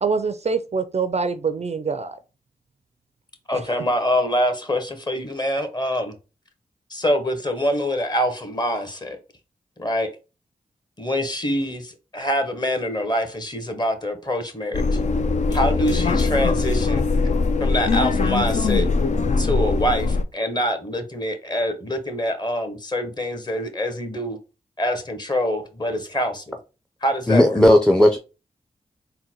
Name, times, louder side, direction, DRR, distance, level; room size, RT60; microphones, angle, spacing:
voice 1, 0.0-2.2 3.5-3.6, right 5 dB, 40° right, 0.5 m, -25 dB
voice 2, 3.5-6.1 6.9-9.2 9.8-10.1 11.0-15.0 15.5-17.0 17.6-18.9 19.4-24.4 24.8-26.6 27.0-27.6, equal, 25° left, 1.1 m, -25 dB
sound 1, 14.7-20.2, left 4 dB, 45° left, 0.5 m, -21 dB
voice 3, 27.3-28.2, left 1 dB, 5° left, 0.6 m, -15 dB
3.9 x 2.2 x 4.3 m
cardioid pair, 50°, 16 cm